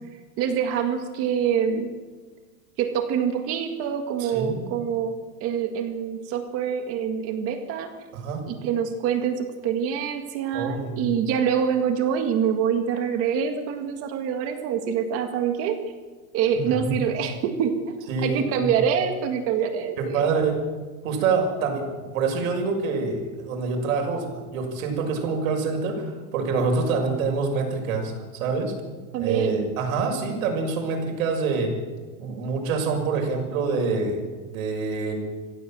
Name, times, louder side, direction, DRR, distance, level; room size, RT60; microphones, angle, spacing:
voice 1, 0.4-1.9 2.8-7.9 8.5-15.8 16.3-18.0 18.2-20.5 29.1-29.6, right 7 dB, 30° right, 6 dB, 1.9 m, -25 dB
voice 2, 4.2-4.6 8.1-8.5 10.5-11.1 16.5-17.0 18.1-18.8 20.0-20.6 21.0-28.1 28.4-28.7 29.2-31.7 32.2-35.1, right 4 dB, 65° right, 2 dB, 6.5 m, -26 dB
25.0 x 16.0 x 7.6 m, 1.4 s
supercardioid pair, 170°, 44 cm